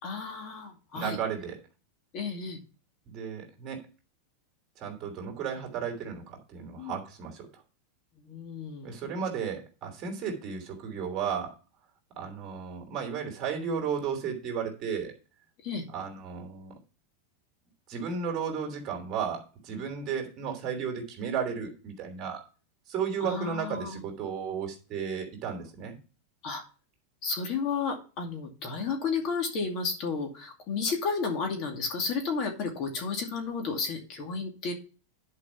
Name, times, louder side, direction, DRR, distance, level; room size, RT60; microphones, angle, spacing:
voice 1, 0.0-1.2 2.1-2.6 6.8-7.0 8.2-9.0 15.6-15.9 23.2-24.0 26.4-26.6 27.2-34.7, left 4 dB, 40° left, 3 dB, 2.3 m, -32 dB
voice 2, 0.9-1.6 3.1-3.8 4.8-7.5 8.8-11.5 12.2-15.1 15.9-16.7 17.9-22.4 22.9-26.0, right 6 dB, 35° right, 3 dB, 3.0 m, -34 dB
10.5 x 5.1 x 5.7 m, 0.35 s
supercardioid pair, 155°, 0 cm